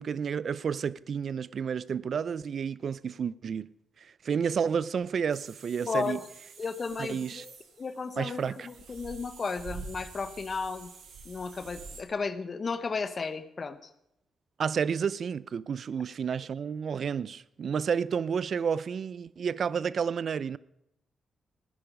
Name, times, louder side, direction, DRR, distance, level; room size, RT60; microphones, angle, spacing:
voice 1, 0.0-3.7 4.2-6.2 7.0-7.4 8.2-8.7 14.6-20.6, right 7 dB, 60° right, 0.5 m, -31 dB
sound 1, 5.3-12.0, right 4 dB, 80° right, 2.6 m, -47 dB
voice 2, 5.9-6.2 6.6-10.9 11.2-13.9, left 4 dB, 45° left, 1.1 m, -34 dB
17.5 x 9.9 x 5.3 m
supercardioid pair, 55°, 0 cm